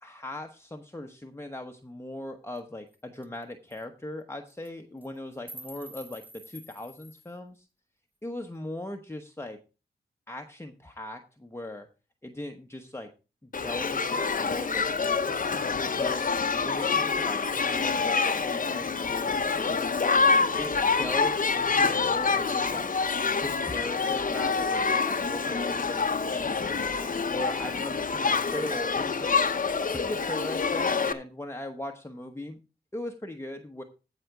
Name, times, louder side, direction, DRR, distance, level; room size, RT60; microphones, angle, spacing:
voice 1, 0.0-7.7 8.2-9.6 10.3-11.9 12.2-13.1 13.4-15.5 15.9-16.2 16.6-19.9 20.6-22.9 23.4-26.9 27.3-29.3 29.8-32.6 32.9-33.8, left 1 dB, 15° left, 4 dB, 1.0 m, -39 dB
sound 1, 2.6-2.7 2.9-3.0 3.2-3.4 3.7-3.8 4.5-4.7 5.0-7.3, right 1 dB, 10° right, 1.2 m, -47 dB
Shout / Human group actions, 13.5-31.1, left 5 dB, 45° left, 0.9 m, -27 dB
15.0 x 5.0 x 4.6 m, 0.31 s
cardioid pair, 70°, 19 cm